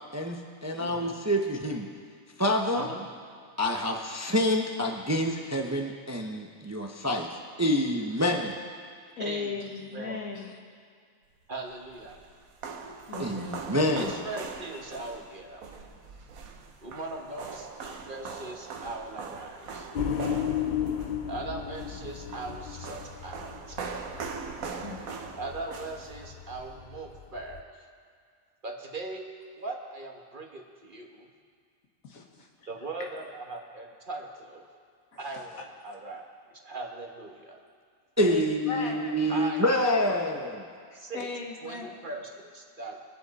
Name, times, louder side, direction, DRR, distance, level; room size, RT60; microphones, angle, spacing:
voice 1, 0.1-1.9 2.4-2.9 3.6-7.3 7.6-8.6 13.2-14.1 38.2-40.7, equal, 15° right, 2 dB, 0.6 m, -27 dB
voice 2, 0.7-1.2 2.7-3.1 9.2-9.6 9.9-10.2 11.5-12.2 13.9-15.6 16.8-19.9 21.2-23.9 25.3-27.9 28.6-29.2 29.6-31.3 32.7-34.7 35.2-36.2 36.6-37.6 39.3-40.4 40.9-41.3 41.6-43.0, right 2 dB, 40° right, 2 dB, 1.3 m, -40 dB
voice 3, 9.2-10.5 13.1-13.7 24.8-25.0 32.3-32.5 38.2-39.0 40.9-41.9, left 5 dB, 90° left, 1 dB, 1.8 m, -36 dB
sound 1, 11.6-26.6, right 5 dB, 90° right, 1.4 m, -41 dB
sound 2, 19.9-27.6, left 8 dB, 55° left, 0.5 m, -34 dB
23.0 x 7.9 x 4.1 m, 2.2 s
omnidirectional pair, 1.4 m